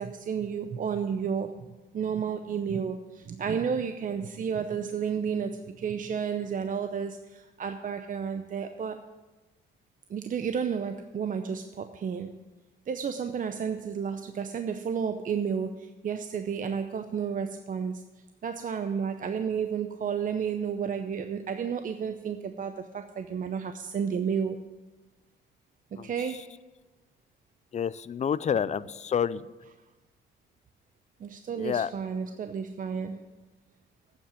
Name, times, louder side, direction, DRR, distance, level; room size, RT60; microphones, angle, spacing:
voice 1, 0.0-9.0 10.1-12.4 12.9-18.0 18.4-24.7 25.9-26.4 28.6-28.7 31.2-33.2, right 7 dB, 45° right, 8 dB, 0.6 m, -32 dB
voice 2, 27.7-29.4 31.6-31.9, left 8 dB, 35° left, 18 dB, 0.4 m, -28 dB
8.7 x 7.5 x 8.2 m, 1.2 s
cardioid pair, 90°, 20 cm